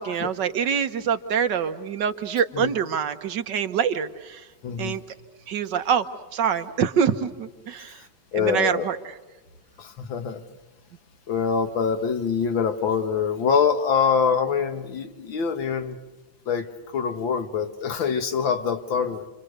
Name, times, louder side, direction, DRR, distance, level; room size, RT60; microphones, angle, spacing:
voice 1, 0.0-4.4 4.8-5.0 5.5-6.1 6.3-8.0 8.3-9.0, right 7 dB, 65° right, 8 dB, 1.7 m, -25 dB
voice 2, 4.6-5.0 7.9-8.0 8.3-8.9 9.8-10.4 11.3-16.0 16.5-19.3, left 6 dB, 90° left, 7 dB, 2.1 m, -25 dB
29.5 x 25.0 x 6.6 m, 1.2 s
omnidirectional pair, 2.1 m